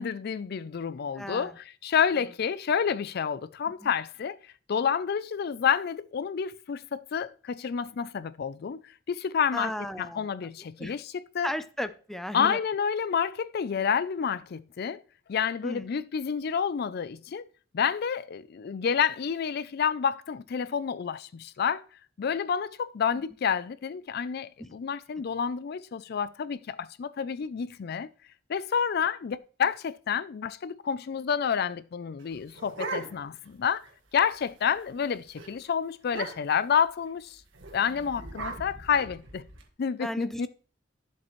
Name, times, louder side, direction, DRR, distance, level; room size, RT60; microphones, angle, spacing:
voice 1, 0.0-9.7 10.0-11.5 12.3-15.0 15.3-17.5 17.7-21.8 22.2-28.1 28.5-33.8 34.1-37.4 37.7-39.4 39.8-40.5, left 7 dB, 55° left, 0.4 m, -29 dB
voice 2, 1.1-1.6 2.2-2.3 3.8-3.9 9.5-10.3 10.8-10.9 11.4-12.6 15.6-15.8 23.1-23.2 37.9-38.0 40.0-40.5, equal, ahead, 0.5 m, -35 dB
sound 1, 32.2-33.5 33.8-33.9 34.2-34.5 34.9-35.1 35.4-35.5 36.0-36.7 37.5-39.6, right 3 dB, 90° right, 1.7 m, -39 dB
12.5 x 7.4 x 3.1 m
head